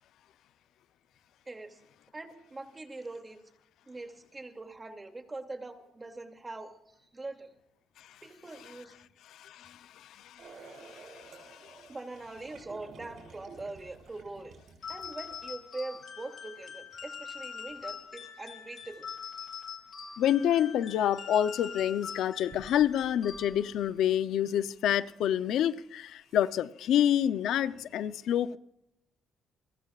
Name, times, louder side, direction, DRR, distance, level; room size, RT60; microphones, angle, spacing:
voice 1, 1.5-1.8 2.1-3.4 3.9-6.7 7.1-7.5 8.2-8.9 11.9-14.5 14.9-19.1, right 2 dB, 20° right, 2.5 m, -42 dB
voice 2, 9.3-11.8 20.2-28.6, left 10 dB, 80° left, 0.6 m, -28 dB
sound 1, 10.4-15.7 17.7-17.8 20.6-20.7 21.5-21.8 22.4-24.1 24.6-24.7 25.6-25.7 26.2-26.5, right 4 dB, 65° right, 6.5 m, -52 dB
sound 2, 14.8-23.9, left 6 dB, 60° left, 3.6 m, -44 dB
29.0 x 14.0 x 2.4 m
cardioid pair, 90°, 0 cm